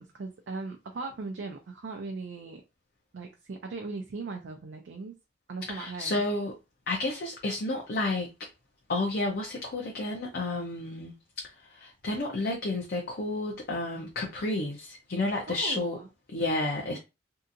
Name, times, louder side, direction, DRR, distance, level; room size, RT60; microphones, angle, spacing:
voice 1, 0.0-2.6 3.1-5.1 5.5-6.2 15.5-16.1 16.8-17.0, right 3 dB, 65° right, 0.4 m, -39 dB
voice 2, 5.7-6.5 6.9-8.3 8.9-11.1 11.6-16.0 16.3-17.0, left 2 dB, 55° left, 0.5 m, -31 dB
2.7 x 2.4 x 2.5 m
head